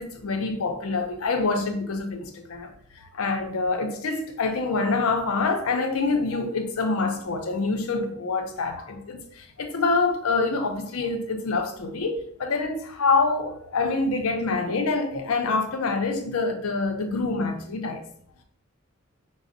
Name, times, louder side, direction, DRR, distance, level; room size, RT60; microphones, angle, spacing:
voice 1, 0.0-2.7 2.9-18.0, left 3 dB, 80° left, 0.5 m, -26 dB
5.0 x 2.0 x 2.5 m
head